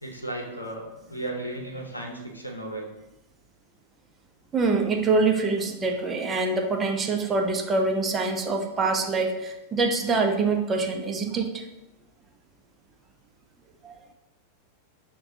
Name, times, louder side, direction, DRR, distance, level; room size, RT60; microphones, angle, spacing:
voice 1, 0.0-2.9, right 1 dB, 85° left, 1 dB, 0.7 m, -35 dB
voice 2, 4.5-11.7 13.8-13.9, right 3 dB, 20° right, 3 dB, 0.5 m, -25 dB
6.6 x 2.2 x 2.7 m, 0.93 s
figure-of-eight pair, 90°, 0 cm